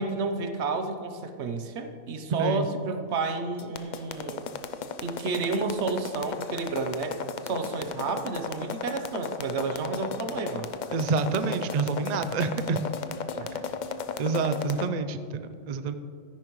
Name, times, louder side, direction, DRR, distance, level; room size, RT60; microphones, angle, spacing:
voice 1, 0.0-4.4 5.0-10.7 13.4-13.6, right 4 dB, 60° right, 7 dB, 1.0 m, -31 dB
sound 1, 3.6-14.9, left 6 dB, 65° left, 0.4 m, -34 dB
voice 2, 10.9-12.8 14.2-15.9, right 4 dB, 85° right, 10 dB, 0.3 m, -28 dB
13.0 x 10.5 x 3.1 m, 2.3 s
omnidirectional pair, 1.4 m